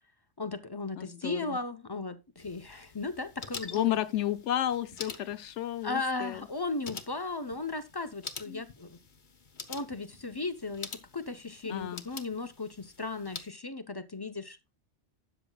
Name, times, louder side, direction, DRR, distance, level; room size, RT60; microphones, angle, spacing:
voice 1, 0.4-4.0 5.8-9.0 9.7-14.6, left 3 dB, 25° left, 0.7 m, -36 dB
voice 2, 1.0-1.6 3.7-6.5 8.5-8.6 11.7-12.0, left 12 dB, 90° left, 1.0 m, -32 dB
sound 1, 2.4-13.5, left 5 dB, 45° left, 1.1 m, -46 dB
13.0 x 9.3 x 2.3 m
omnidirectional pair, 1.2 m